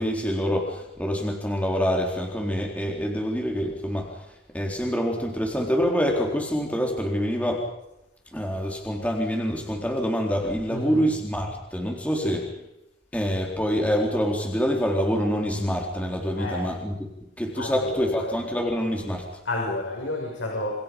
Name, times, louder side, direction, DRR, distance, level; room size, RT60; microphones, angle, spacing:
voice 1, 0.0-7.7 8.3-12.4 13.1-17.1 17.4-19.3, equal, 5° left, 0 dB, 4.0 m, -26 dB
voice 2, 10.7-11.0 12.1-12.4 16.4-16.8 17.5-18.3 19.4-20.8, left 1 dB, 80° left, 0 dB, 6.7 m, -31 dB
29.0 x 28.0 x 5.4 m, 0.88 s
head